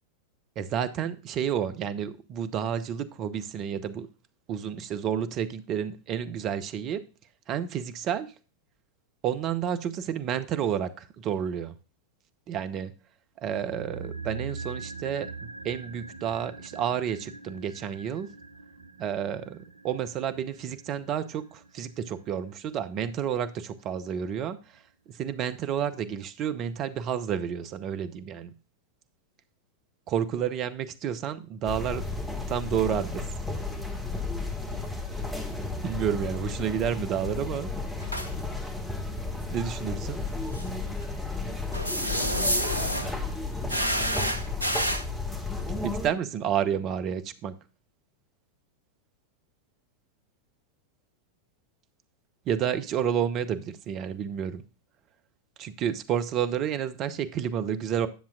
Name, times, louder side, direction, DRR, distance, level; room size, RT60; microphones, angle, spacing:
voice 1, 0.6-4.1 4.5-7.0 7.5-8.3 9.2-11.7 12.5-12.9 13.4-15.3 15.6-18.3 19.0-19.6 19.8-24.6 25.1-28.5 30.1-32.0 32.5-33.3 35.8-37.7 39.5-40.2 45.7-47.6 52.5-54.6 55.6-58.1, right 9 dB, 35° right, 0.7 m, -30 dB
sound 1, 13.5-23.8 24.0-24.1, right 4 dB, 70° right, 0.5 m, -43 dB
sound 2, 31.6-46.1, left 3 dB, ahead, 1.6 m, -33 dB
sound 3, 38.0-38.3 40.5-40.7 41.7-43.1 43.7-45.0, equal, 85° left, 0.7 m, -28 dB
10.5 x 7.0 x 2.4 m
figure-of-eight pair, 90°, 0 cm